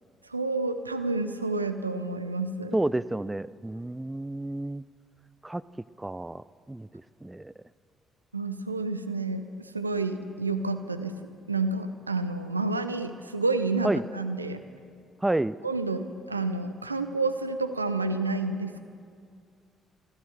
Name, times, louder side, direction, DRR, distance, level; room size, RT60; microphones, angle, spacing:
voice 1, 0.3-2.8 8.3-11.2 11.5-14.6 15.6-18.8, right 3 dB, 90° right, 10 dB, 0.5 m, -29 dB
voice 2, 2.7-4.8 5.4-5.6 6.0-7.5 13.8-14.0 15.2-15.6, right 2 dB, 15° right, 17 dB, 0.4 m, -30 dB
14.0 x 12.5 x 6.6 m, 2.3 s
figure-of-eight pair, 45°, 0 cm